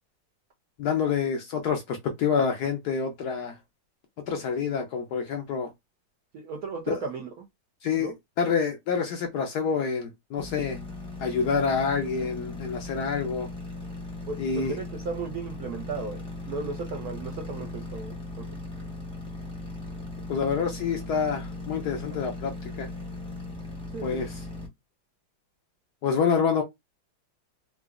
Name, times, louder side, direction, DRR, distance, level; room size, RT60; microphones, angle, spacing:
voice 1, 0.8-3.6 4.3-5.7 6.9-7.1 7.8-8.1 8.4-10.8 11.2-13.5 14.4-14.8 20.3-22.9 24.0-24.3 26.0-26.6, left 6 dB, 70° left, 1.0 m, -27 dB
voice 2, 6.3-7.4 8.0-8.1 14.3-18.6 22.1-22.2 23.9-24.2, right 4 dB, 70° right, 0.9 m, -36 dB
sound 1, 10.4-24.7, left 2 dB, 5° left, 0.6 m, -38 dB
3.8 x 2.4 x 2.3 m
omnidirectional pair, 2.2 m